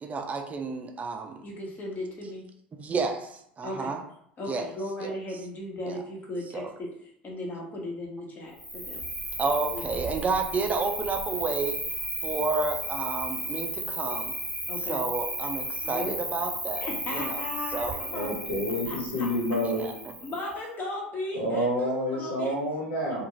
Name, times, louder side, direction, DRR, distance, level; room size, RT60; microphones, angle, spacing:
voice 1, 0.0-1.4 2.7-3.3 3.6-4.0 4.5-4.7 5.0-5.1 5.9-6.0 6.5-6.7 9.4-11.8 12.2-14.3 14.9-17.4 17.7-18.0 19.6-19.9, right 4 dB, 30° right, 4 dB, 0.5 m, -30 dB
voice 2, 1.4-2.5 3.6-3.9 4.4-9.0 9.7-10.1 14.7-15.1 15.8-16.2 16.8-18.4 18.9-19.3 20.2-22.6 23.1-23.2, left 1 dB, 35° left, -1 dB, 1.1 m, -36 dB
Cricket, 8.6-20.5, right 1 dB, 5° right, 1.2 m, -34 dB
voice 3, 18.1-19.9 21.3-23.2, equal, 85° left, -5 dB, 1.3 m, -28 dB
2.5 x 2.4 x 3.0 m, 0.71 s
hypercardioid pair, 85°, 5 cm